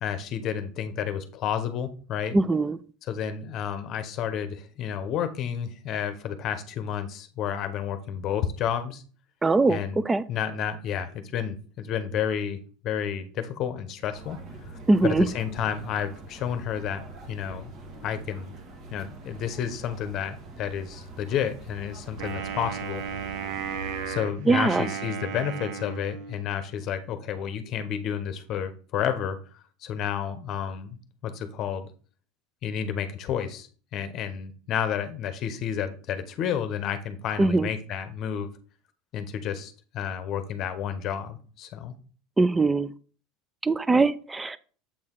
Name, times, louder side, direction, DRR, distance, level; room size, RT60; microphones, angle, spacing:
voice 1, 0.0-2.3 3.0-9.0 9.7-10.0 10.3-12.6 12.8-14.4 14.7-17.7 18.0-18.5 18.9-23.0 24.1-31.0 31.2-31.9 32.6-38.5 39.1-41.9, left 8 dB, 50° left, 10 dB, 0.8 m, -31 dB
voice 2, 2.3-2.8 9.4-9.8 10.1-10.2 14.9-15.3 24.5-24.8 37.4-37.7 42.4-42.9 43.6-44.6, right 3 dB, 15° right, 17 dB, 0.4 m, -21 dB
sound 1, 14.1-24.2, right 3 dB, 50° right, 1.6 m, -44 dB
Wind instrument woodwind instrument, 22.2-26.6, right 7 dB, 70° right, 0.9 m, -35 dB
7.3 x 4.4 x 3.7 m, 0.41 s
supercardioid pair, 115°, 0 cm